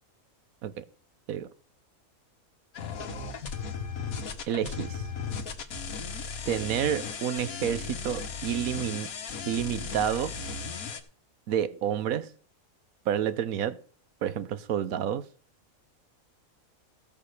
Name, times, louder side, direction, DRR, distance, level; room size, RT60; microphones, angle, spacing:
sound 1, 2.7-11.0, left 5 dB, 80° left, 1.6 m, -36 dB
voice 1, 4.5-5.1 6.5-9.1 9.5-10.3 11.5-12.3 13.1-13.8 14.2-15.3, right 9 dB, 85° right, 1.2 m, -29 dB
16.0 x 5.3 x 6.5 m
omnidirectional pair, 1.5 m